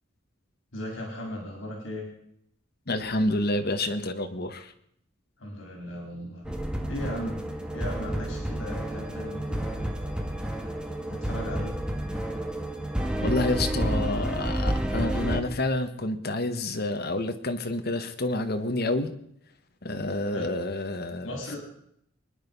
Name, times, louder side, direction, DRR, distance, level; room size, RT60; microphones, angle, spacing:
voice 1, 0.7-2.1 5.4-6.5 6.9-7.5 7.7-9.8 11.1-11.8 20.3-20.4 21.2-21.6, equal, 75° left, 0 dB, 4.5 m, -37 dB
voice 2, 2.9-4.7 13.2-19.1 19.8-21.6, left 2 dB, 55° left, 7 dB, 1.5 m, -29 dB
sound 1, 6.4-15.4, right 1 dB, 5° right, 1.7 m, -30 dB
24.0 x 10.5 x 5.5 m, 0.73 s
head